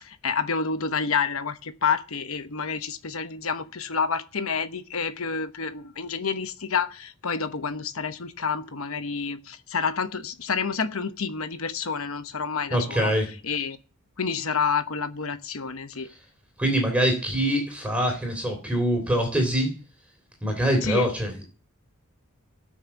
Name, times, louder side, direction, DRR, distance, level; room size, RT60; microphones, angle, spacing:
voice 1, 0.0-13.1 13.4-13.8 14.2-16.1 20.8-21.1, left 5 dB, 70° left, 1.0 m, -29 dB
voice 2, 12.7-13.3 16.6-19.7 20.4-21.4, right 1 dB, 5° right, 3.2 m, -24 dB
17.5 x 6.5 x 7.0 m
head